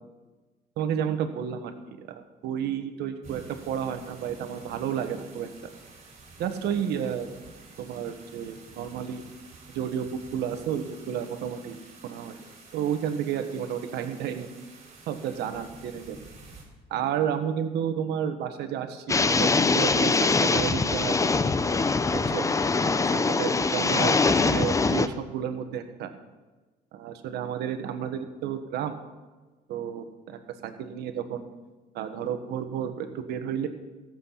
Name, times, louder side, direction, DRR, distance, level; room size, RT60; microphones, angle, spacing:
voice 1, 0.8-5.5 6.4-7.3 7.8-9.2 9.7-11.7 12.0-12.4 12.7-14.5 15.1-16.2 16.9-21.5 22.3-22.5 23.1-24.1 24.4-26.1 26.9-29.0 29.7-31.5 31.9-33.7, right 8 dB, 80° right, 7 dB, 1.4 m, -31 dB
sound 1, 3.2-16.6, right 3 dB, 45° right, 4.6 m, -50 dB
sound 2, 19.1-25.1, left 4 dB, 20° left, 0.6 m, -23 dB
17.0 x 7.7 x 5.8 m, 1.2 s
cardioid pair, 110°, 17 cm